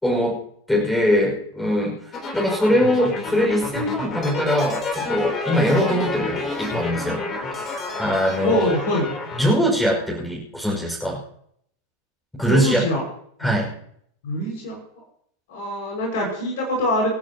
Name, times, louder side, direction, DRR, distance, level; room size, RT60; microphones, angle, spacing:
voice 1, 0.0-0.4 0.7-2.0 2.3-7.2 7.9-8.7 9.4-11.2 12.4-12.9 13.4-13.7, equal, 5° left, -2 dB, 5.8 m, -21 dB
sound 1, 2.1-9.6, left 3 dB, 25° left, 3.7 m, -29 dB
voice 2, 8.4-9.0 12.5-13.0 14.2-14.8 15.5-17.1, left 1 dB, 55° left, -1 dB, 5.8 m, -23 dB
28.0 x 10.5 x 3.0 m, 0.67 s
figure-of-eight pair, 90°, 0 cm